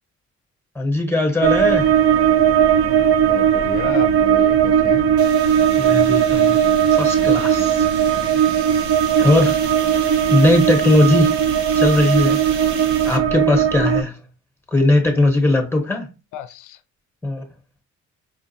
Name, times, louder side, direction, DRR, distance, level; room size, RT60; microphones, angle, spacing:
voice 1, 0.7-1.9 5.8-6.6 6.9-7.9 9.2-9.5 10.3-11.3 11.7-12.4 13.0-14.2 14.7-16.1 17.2-17.4, left 2 dB, 10° left, 0.8 m, -18 dB
sound 1, 1.4-14.0, right 9 dB, 50° right, 0.4 m, -17 dB
voice 2, 3.3-5.1 9.2-9.5 16.3-16.8, left 9 dB, 80° left, 0.5 m, -32 dB
sound 2, 5.2-13.2, right 5 dB, 75° right, 0.9 m, -35 dB
5.0 x 2.4 x 2.6 m
cardioid pair, 90°, 30 cm